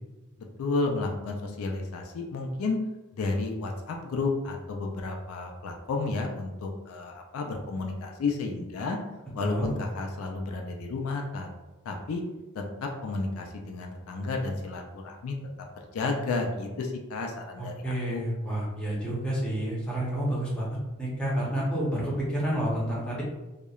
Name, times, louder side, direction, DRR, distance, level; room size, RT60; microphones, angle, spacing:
voice 1, 0.6-2.8 3.1-9.0 9.4-11.5 11.8-12.2 12.5-15.4 15.9-18.2, left 3 dB, 70° left, 2 dB, 0.3 m, -32 dB
voice 2, 17.6-23.2, right 1 dB, 5° left, -6 dB, 0.6 m, -29 dB
2.8 x 2.0 x 2.3 m, 1.1 s
head